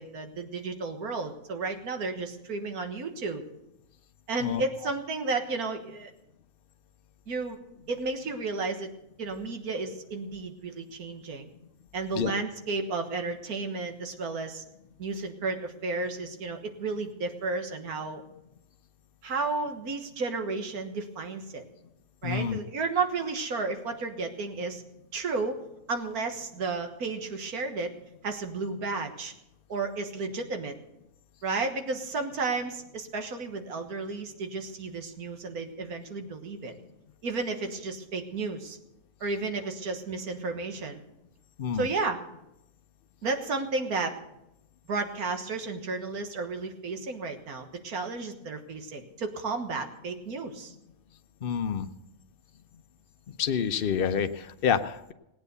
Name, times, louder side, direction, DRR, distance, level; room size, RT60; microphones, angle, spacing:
voice 1, 0.0-3.4 4.3-6.1 7.3-7.6 7.9-8.9 9.2-11.5 11.9-14.6 15.0-18.2 19.2-21.6 22.2-24.8 25.1-25.6 25.9-27.9 28.2-29.3 29.7-30.8 31.4-36.7 37.2-38.8 39.2-41.0 41.7-42.2 43.2-44.2 44.9-50.7, right 3 dB, 85° right, 6 dB, 1.9 m, -32 dB
voice 2, 22.2-22.6 41.6-41.9 51.4-51.9 53.4-55.1, left 7 dB, 50° left, 9 dB, 0.8 m, -28 dB
18.0 x 9.1 x 6.8 m, 0.88 s
omnidirectional pair, 1.5 m